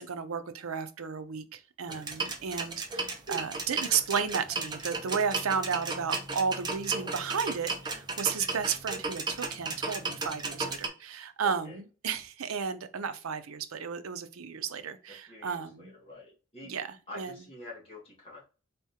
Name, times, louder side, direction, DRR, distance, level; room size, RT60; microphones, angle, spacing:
voice 1, 0.0-15.9 16.6-17.4, right 6 dB, 85° right, 11 dB, 0.6 m, -33 dB
sound 1, 1.9-10.9, right 3 dB, 20° right, 0.5 m, -35 dB
voice 2, 5.0-5.4 6.6-7.1 11.4-11.8 15.1-16.7 17.1-18.4, left 1 dB, 25° left, -5 dB, 1.7 m, -47 dB
3.7 x 3.5 x 2.8 m, 0.35 s
head